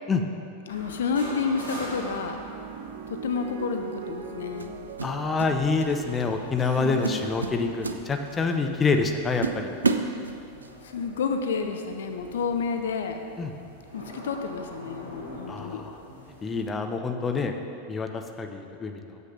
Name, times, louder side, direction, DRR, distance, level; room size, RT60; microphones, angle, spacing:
sound 1, 0.7-16.7, equal, 90° left, 2.1 m, -45 dB
voice 1, 0.7-2.4 3.1-4.8 6.8-7.2 10.8-13.2 13.9-15.8, left 5 dB, 60° left, 6 dB, 0.5 m, -30 dB
sound 2, 1.1-9.6 10.5-10.9, right 7 dB, 50° right, 0.8 m, -43 dB
sound 3, 3.3-3.5 4.6-5.5 5.8-6.1 6.6-6.7 7.0-8.5 9.0-9.1 9.4-10.7, right 4 dB, 75° right, 0.4 m, -30 dB
voice 2, 5.0-9.7 13.4-13.5 15.5-16.0 16.4-17.5 17.9-19.2, left 4 dB, 20° left, 5 dB, 0.6 m, -27 dB
7.7 x 5.9 x 5.5 m, 2.5 s
figure-of-eight pair, 90°, 0 cm